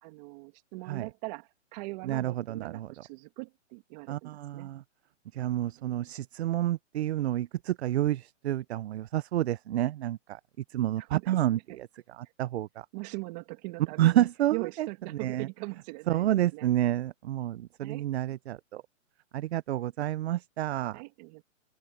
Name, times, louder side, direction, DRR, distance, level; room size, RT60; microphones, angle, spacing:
voice 1, 0.0-4.7 5.8-6.1 11.0-11.8 12.9-16.7 17.8-18.1 20.9-21.4, right 26 dB, 35° right, 2.5 m, -41 dB
voice 2, 2.0-2.9 4.1-4.8 5.3-10.4 10.7-11.6 12.2-12.9 14.0-14.9 15.2-15.5 16.1-18.8 19.3-21.0, right 13 dB, 55° right, 0.6 m, -29 dB
hypercardioid pair, 150°, 38 cm